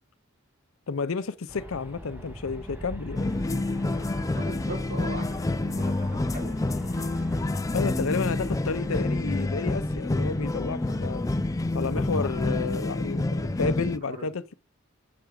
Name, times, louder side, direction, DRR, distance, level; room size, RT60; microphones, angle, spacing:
voice 1, 0.9-3.3 7.7-11.2 11.7-14.5, left 4 dB, 85° left, 0.6 m, -31 dB
Aircraft, 1.5-13.7, equal, 10° right, 1.5 m, -41 dB
sound 1, 3.1-14.0, left 2 dB, 15° left, 0.4 m, -28 dB
voice 2, 4.3-7.1 14.1-14.4, right 1 dB, 55° right, 3.9 m, -40 dB
7.8 x 6.1 x 4.8 m
head